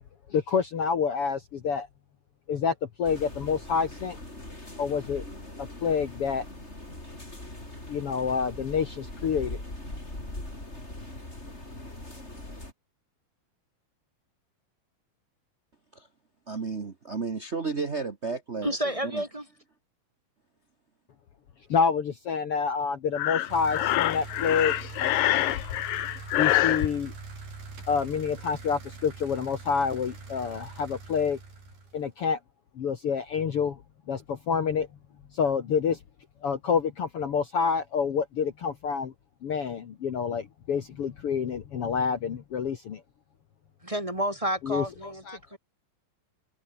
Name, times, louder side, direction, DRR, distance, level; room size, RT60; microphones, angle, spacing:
voice 1, 0.3-1.9 2.5-4.2 4.8-5.2 5.6-6.5 7.9-9.6 21.7-25.1 26.4-27.1 27.9-31.4 31.9-32.4 32.8-33.8 34.1-34.9 35.3-36.0 36.4-39.1 39.4-43.0 44.6-45.4, left 6 dB, 50° left, 2.0 m, -28 dB
sound 1, 3.0-12.7, left 1 dB, 15° left, 7.5 m, -41 dB
voice 2, 16.5-19.2, right 4 dB, 50° right, 0.7 m, -33 dB
voice 3, 18.6-19.5 43.8-45.6, right 1 dB, 10° right, 3.4 m, -30 dB
Breathing, 23.1-26.9, left 14 dB, 80° left, 2.9 m, -26 dB
sound 2, 23.5-32.1, right 4 dB, 85° right, 9.0 m, -43 dB
omnidirectional pair, 3.9 m